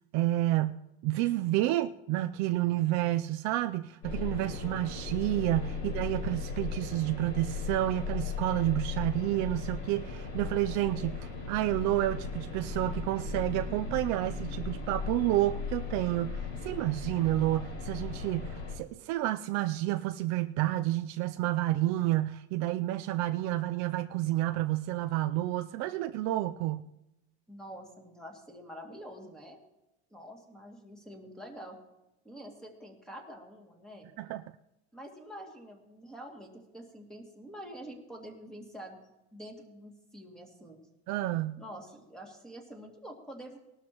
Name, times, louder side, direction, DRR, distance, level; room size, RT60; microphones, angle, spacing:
voice 1, 0.1-26.9 34.2-34.4 41.1-41.6, right 15 dB, 55° right, 0.5 m, -30 dB
sound 1, 4.0-18.8, left 5 dB, 65° left, 6.3 m, -37 dB
voice 2, 27.5-29.6 30.1-31.8 32.2-34.1 34.9-40.8 41.6-43.6, equal, ahead, 2.4 m, -47 dB
20.0 x 12.5 x 3.0 m
cardioid pair, 145°, 33 cm